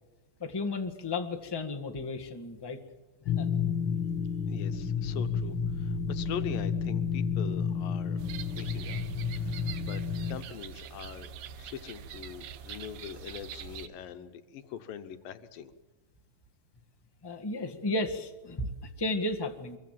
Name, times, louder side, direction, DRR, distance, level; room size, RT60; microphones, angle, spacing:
voice 1, 0.4-2.8 3.4-3.5 17.2-18.7 19.0-19.8, left 2 dB, 20° left, 3 dB, 0.6 m, -33 dB
sound 1, 3.3-10.4, left 6 dB, 55° left, 1.5 m, -31 dB
voice 2, 4.5-8.2 8.5-9.0 9.4-10.0 10.3-11.3 11.6-15.7, left 9 dB, 85° left, 10 dB, 2.8 m, -42 dB
sound 2, 8.2-13.9, right 8 dB, 80° right, 2.8 m, -44 dB
25.0 x 23.0 x 7.6 m, 1.1 s
omnidirectional pair, 3.9 m